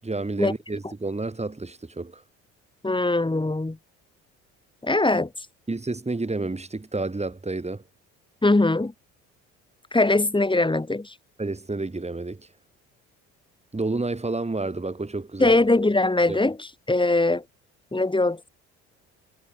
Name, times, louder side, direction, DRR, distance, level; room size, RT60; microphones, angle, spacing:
voice 1, 0.0-2.2 5.7-7.8 11.4-12.5 13.7-15.6 16.3-16.4, right 3 dB, 20° right, 7.5 m, -30 dB
voice 2, 2.8-3.8 4.8-5.3 8.4-8.9 9.9-11.1 15.4-16.6 16.9-17.4 17.9-18.4, left 2 dB, 15° left, 5.9 m, -21 dB
hypercardioid pair, 60°, 36 cm